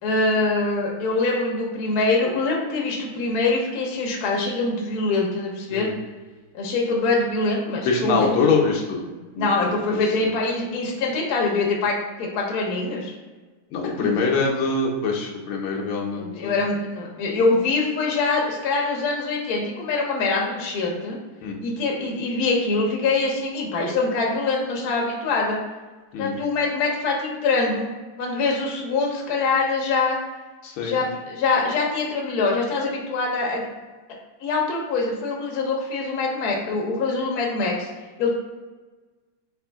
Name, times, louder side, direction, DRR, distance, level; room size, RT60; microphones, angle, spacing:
voice 1, 0.0-5.9 6.5-8.4 9.3-13.1 13.8-14.2 16.1-21.2 21.6-25.6 26.2-27.9 28.2-30.2 30.8-33.6 34.4-37.9 38.2-38.3, left 3 dB, 60° left, -1 dB, 1.2 m, -24 dB
voice 2, 7.8-9.0 9.4-9.8 10.2-10.3 13.7-16.6 21.4-21.6 26.1-26.4 30.6-31.0, left 4 dB, 80° left, -1 dB, 1.5 m, -24 dB
4.2 x 3.3 x 3.5 m, 1.3 s
omnidirectional pair, 2.3 m